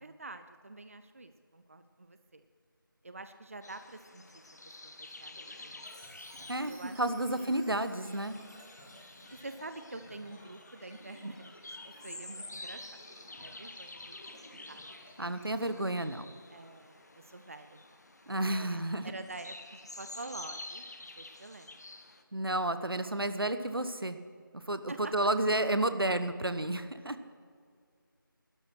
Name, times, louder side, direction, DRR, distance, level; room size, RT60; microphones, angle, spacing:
voice 1, 0.0-2.4 3.0-5.9 6.6-7.0 7.3-7.6 9.3-14.8 15.2-15.3 16.5-18.0 18.5-20.8 21.2-21.8 24.9-25.1, right 2 dB, 40° right, 10 dB, 0.5 m, -47 dB
sound 1, 3.6-22.2, left 2 dB, 50° left, 1.1 m, -49 dB
sound 2, 5.4-15.8, left 1 dB, 25° left, 3.1 m, -56 dB
Chime, 5.8-9.9, right 1 dB, 5° right, 0.9 m, -59 dB
voice 2, 6.5-8.4 15.2-16.3 18.3-19.1 22.3-24.2 24.5-27.2, right 1 dB, 85° right, 11 dB, 1.0 m, -31 dB
12.5 x 10.0 x 6.2 m, 2.1 s
figure-of-eight pair, 170°, 12 cm